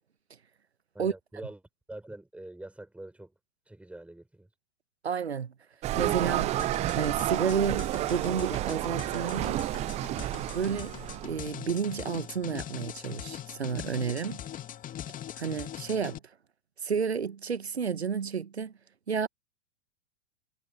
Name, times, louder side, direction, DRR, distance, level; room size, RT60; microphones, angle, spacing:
voice 1, 0.9-1.6 1.9-3.3 3.7-4.5, right 1 dB, 5° right, 5.5 m, -44 dB
voice 2, 5.0-5.5 6.0-6.6 6.9-9.6 10.5-14.4 15.4-16.2 16.8-18.7 19.1-19.3, right 6 dB, 85° right, 1.1 m, -31 dB
sound 1, 5.8-11.4, right 15 dB, 20° right, 0.5 m, -31 dB
sound 2, 6.6-16.2, left 11 dB, 25° left, 2.4 m, -42 dB
figure-of-eight pair, 100°, 32 cm